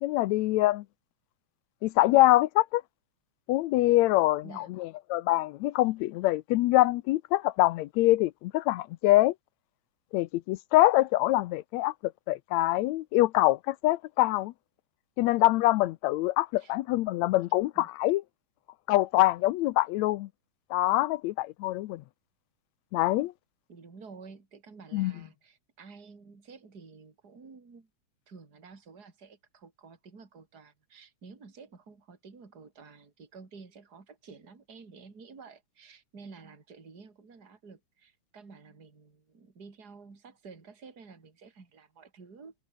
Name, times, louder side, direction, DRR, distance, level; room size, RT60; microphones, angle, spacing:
voice 1, 0.0-0.8 1.8-2.8 3.5-9.3 10.1-14.5 15.2-18.2 18.9-20.3 20.7-22.0 22.9-23.3 24.9-25.1, left 17 dB, 80° left, 1.8 m, -24 dB
voice 2, 4.4-4.7 16.6-16.8 17.8-17.9 23.7-27.9 28.3-42.5, right 4 dB, 30° right, 3.9 m, -51 dB
omnidirectional pair, 3.4 m